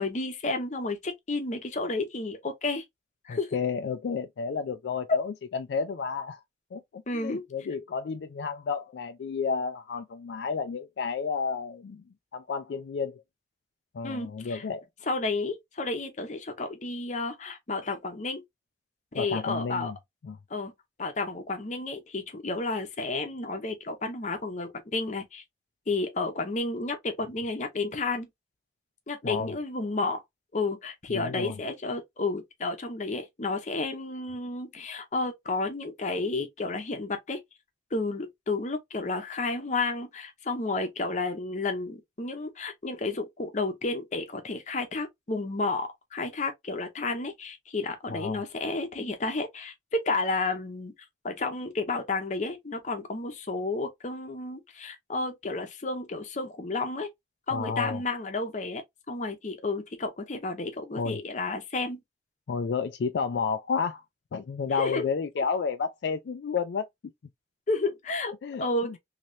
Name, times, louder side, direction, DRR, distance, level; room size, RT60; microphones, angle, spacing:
voice 1, 0.0-2.8 3.2-3.6 7.1-7.4 14.0-14.6 15.1-18.4 19.1-19.9 20.5-20.7 21.0-25.4 25.9-28.3 29.1-30.2 30.5-37.4 37.9-50.9 51.2-57.1 57.5-58.8 59.1-62.0 64.7-65.1 65.4-65.5 67.7-68.3 68.6-69.0, left 3 dB, 45° left, 0.7 m, -31 dB
voice 2, 3.3-6.4 6.7-12.0 12.3-13.2 13.9-14.8 19.1-20.0 20.2-20.4 29.2-29.5 31.1-31.6 48.1-48.4 57.5-58.0 61.0-61.2 62.5-64.0 64.3-66.9 68.4-69.0, left 5 dB, 70° left, 0.4 m, -31 dB
3.1 x 2.8 x 2.5 m
head